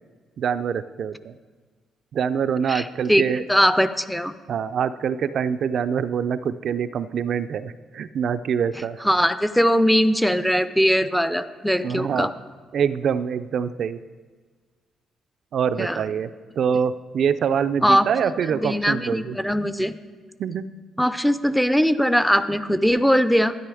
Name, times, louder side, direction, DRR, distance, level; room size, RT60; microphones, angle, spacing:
voice 1, 0.4-1.3 2.1-3.4 4.5-9.0 11.8-12.3 12.7-14.0 15.5-16.3 16.6-19.4 20.4-20.7, right 7 dB, 60° right, 11 dB, 0.5 m, -25 dB
voice 2, 2.7-3.2 3.5-4.3 9.0-12.3 15.8-16.0 17.8-18.0 18.5-20.0 21.0-23.6, equal, ahead, 13 dB, 0.6 m, -20 dB
12.0 x 9.9 x 4.9 m, 1.5 s
cardioid pair, 90°, 0 cm